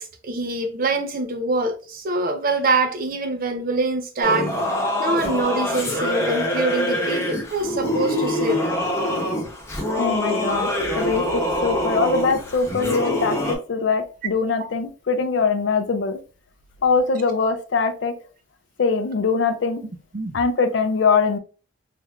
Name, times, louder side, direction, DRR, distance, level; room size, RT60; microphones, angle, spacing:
voice 1, 0.0-4.5 5.0-8.6 20.1-20.3, right 3 dB, 45° right, 0.5 m, -24 dB
Singing / Musical instrument, 4.2-13.6, left 1 dB, 15° left, 0.7 m, -24 dB
voice 2, 10.0-10.7 10.9-16.2 16.8-18.1 18.8-19.8 20.3-21.4, left 4 dB, 60° left, 0.4 m, -22 dB
3.3 x 3.0 x 2.3 m
head